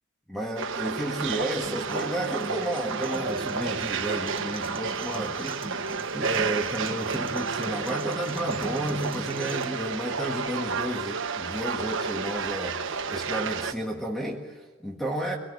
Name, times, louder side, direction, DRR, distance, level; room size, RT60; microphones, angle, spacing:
voice 1, 0.3-5.8 6.1-15.4, right 1 dB, ahead, 1 dB, 1.6 m, -32 dB
sound 1, 0.6-13.7, right 5 dB, 65° right, 1.3 m, -31 dB
sound 2, 1.7-9.6, right 2 dB, 25° right, 1.2 m, -41 dB
25.5 x 19.0 x 8.6 m, 1.3 s
head